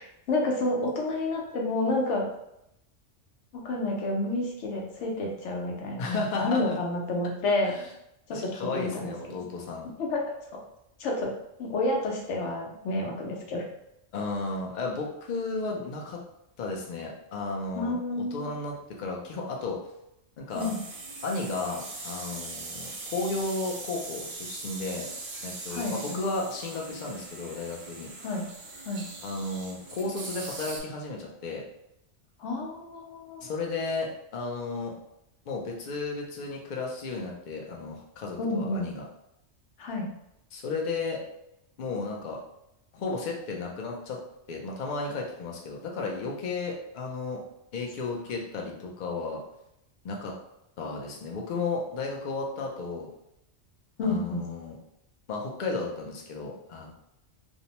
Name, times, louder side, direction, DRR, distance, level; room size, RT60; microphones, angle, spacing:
voice 1, 0.0-2.2 3.5-7.7 8.3-9.4 10.0-10.3 11.0-11.3 11.6-13.6 17.7-18.5 20.5-20.8 25.7-26.2 28.2-28.5 28.9-29.1 32.4-33.5 38.4-38.9 39.8-40.1 48.6-48.7 54.0-54.5, left 2 dB, 75° left, -1 dB, 1.0 m, -30 dB
voice 2, 6.0-6.8 7.6-7.9 8.3-9.9 14.1-16.2 16.6-19.8 20.4-20.7 21.2-25.1 25.4-28.1 29.2-31.6 33.4-35.0 35.5-39.1 40.5-41.2 41.8-42.4 42.9-44.2 44.5-47.4 47.7-49.4 50.0-50.4 50.8-53.1 54.0-54.8 55.3-56.9, left 3 dB, 55° left, -1 dB, 0.6 m, -33 dB
sound 1, 20.5-30.8, right 3 dB, 55° right, 0.7 m, -41 dB
2.6 x 2.1 x 2.8 m, 0.81 s
omnidirectional pair, 1.2 m